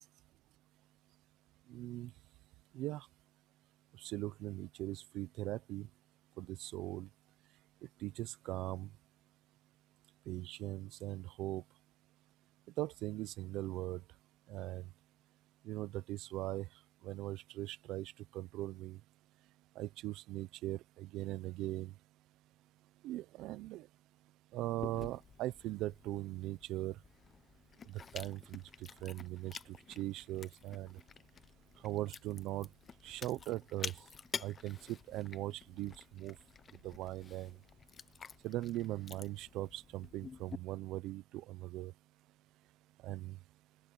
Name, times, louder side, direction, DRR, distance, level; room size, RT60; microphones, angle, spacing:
voice 1, 1.7-2.1 2.7-3.1 3.9-5.9 6.4-7.1 8.0-8.9 10.3-11.6 12.8-14.0 14.5-14.9 15.6-16.7 17.0-19.0 19.8-21.9 23.0-23.9 24.5-27.0 27.9-31.0 31.8-32.7 33.0-33.9 34.4-36.4 36.8-37.6 38.4-41.9 43.0-43.4, right 16 dB, 85° right, 0.6 m, -40 dB
Chewing mastication, 24.8-40.6, left 6 dB, 35° left, 0.7 m, -50 dB
open air
cardioid pair, 135°, 0 cm